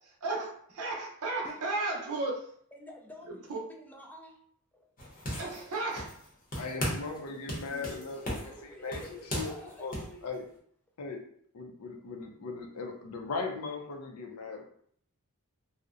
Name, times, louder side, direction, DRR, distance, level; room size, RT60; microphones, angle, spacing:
voice 1, 0.2-2.3 3.3-3.7 5.4-6.1, right 2 dB, 70° right, -1 dB, 0.6 m, -34 dB
voice 2, 1.4-2.2 2.7-4.4 4.7-4.9 7.0-10.3, equal, 5° left, 0 dB, 0.3 m, -50 dB
sound 1, 5.0-6.3 6.5-7.2 7.5-10.1, equal, 40° left, 0.7 m, -37 dB
voice 3, 6.6-8.2 8.8-10.4 11.0-11.2 11.5-14.6, left 4 dB, 70° left, 3 dB, 0.5 m, -38 dB
2.5 x 2.0 x 2.4 m, 0.63 s
head